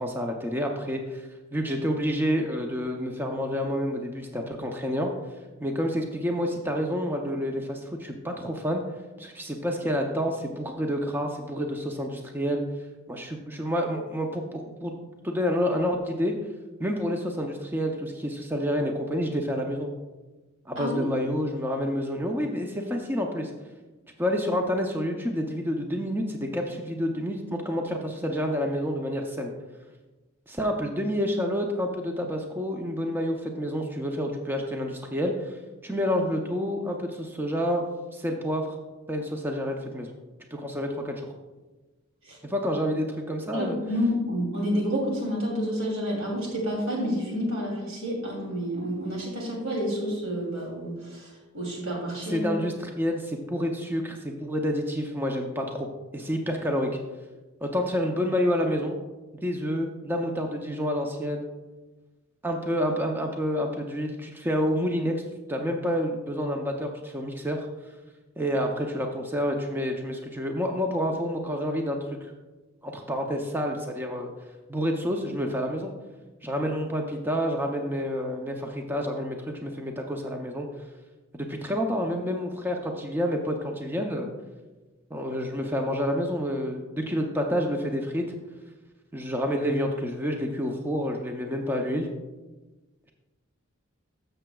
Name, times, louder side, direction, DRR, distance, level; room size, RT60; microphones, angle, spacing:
voice 1, 0.0-5.1 5.6-8.8 9.2-12.6 13.1-14.9 15.2-16.3 16.8-19.9 20.7-23.5 24.2-29.5 30.5-37.9 38.1-38.8 39.1-40.1 40.5-41.3 42.4-43.8 52.3-55.9 56.1-56.9 57.6-59.0 59.3-61.4 62.4-65.1 65.5-67.7 68.4-72.3 72.8-74.3 74.7-75.9 76.4-80.7 81.3-84.3 85.1-88.2 89.1-92.1, equal, 10° right, 2 dB, 0.6 m, -28 dB
voice 2, 43.5-52.5, equal, 80° right, -2 dB, 2.9 m, -29 dB
13.5 x 6.7 x 2.3 m, 1.2 s
head